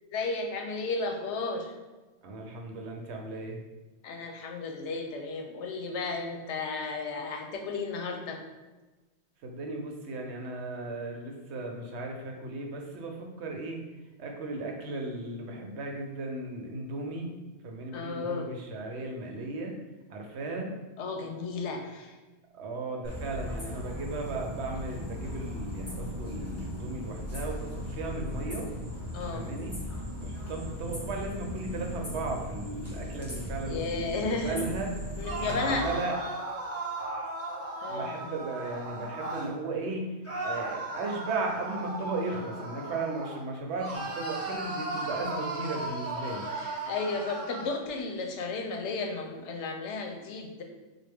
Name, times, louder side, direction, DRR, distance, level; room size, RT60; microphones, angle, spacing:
voice 1, 0.0-1.7 4.0-8.4 17.9-18.5 21.0-22.2 29.1-29.5 33.7-34.6 35.2-35.9 37.8-38.1 46.2-50.6, left 3 dB, 85° left, 3 dB, 0.9 m, -34 dB
voice 2, 2.2-3.6 9.4-13.8 14.2-17.3 17.6-19.8 20.1-20.7 22.5-28.7 29.3-29.8 30.1-35.0 35.4-36.2 37.9-40.1 40.4-46.5, right 2 dB, 75° right, 1 dB, 0.9 m, -36 dB
sound 1, 23.0-35.7, equal, 15° left, 0.9 m, -37 dB
sound 2, 35.2-39.5 40.2-43.4 43.8-47.7, right 2 dB, 15° right, 0.7 m, -36 dB
4.2 x 2.2 x 3.4 m, 1.2 s
omnidirectional pair, 1.2 m